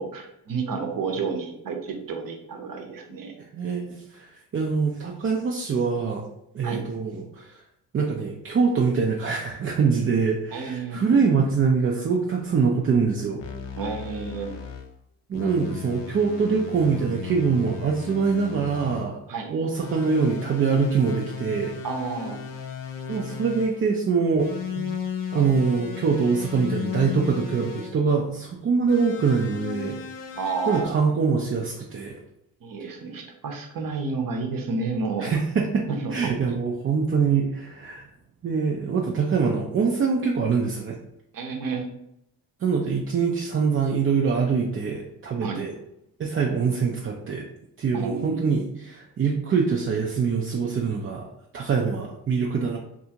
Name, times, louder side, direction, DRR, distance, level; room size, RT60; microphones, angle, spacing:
voice 1, 0.0-3.4 6.6-6.8 10.5-11.0 13.8-14.5 19.3-19.5 21.8-22.4 30.4-30.9 32.6-35.3 35.9-36.3 41.3-41.9 45.4-45.6 47.9-48.7, right 4 dB, 50° right, 4 dB, 0.7 m, -30 dB
voice 2, 3.5-6.3 6.5-7.6 7.9-13.4 15.3-19.2 19.5-21.7 23.1-24.9 25.3-30.0 30.7-32.2 35.2-38.1 38.4-41.0 42.6-45.7 46.2-47.4 47.8-51.3 51.5-52.8, right 5 dB, 30° right, 0 dB, 0.4 m, -24 dB
sound 1, 13.4-14.9 15.3-19.1 19.8-23.9 24.4-28.0 28.9-30.9, left 7 dB, 75° left, 0.6 m, -35 dB
2.7 x 2.4 x 2.8 m, 0.79 s
supercardioid pair, 55°, 44 cm